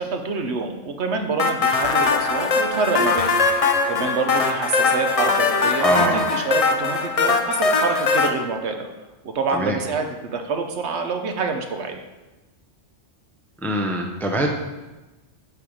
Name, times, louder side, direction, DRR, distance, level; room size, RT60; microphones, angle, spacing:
voice 1, 0.0-3.4 3.9-8.9 9.2-12.0, right 4 dB, 70° right, 5 dB, 1.1 m, -26 dB
sound 1, 1.4-8.3, left 4 dB, 45° left, 0.5 m, -21 dB
voice 2, 5.8-6.3 9.5-9.8 13.6-14.5, right 1 dB, ahead, 1 dB, 0.6 m, -23 dB
6.9 x 5.6 x 4.9 m, 1.1 s
omnidirectional pair, 1.2 m